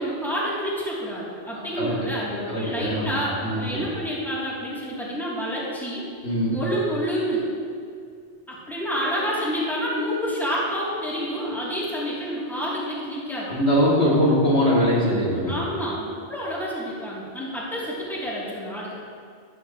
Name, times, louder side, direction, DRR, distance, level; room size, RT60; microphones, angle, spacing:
voice 1, 0.0-6.0 6.5-7.4 8.5-13.5 15.0-15.1 15.5-18.9, equal, ahead, -8 dB, 3.2 m, -28 dB
voice 2, 1.5-2.1 2.5-3.1 3.4-3.8 6.2-6.5 13.5-15.5, equal, 75° left, -6 dB, 3.1 m, -22 dB
14.0 x 12.5 x 3.2 m, 2.2 s
omnidirectional pair, 1.1 m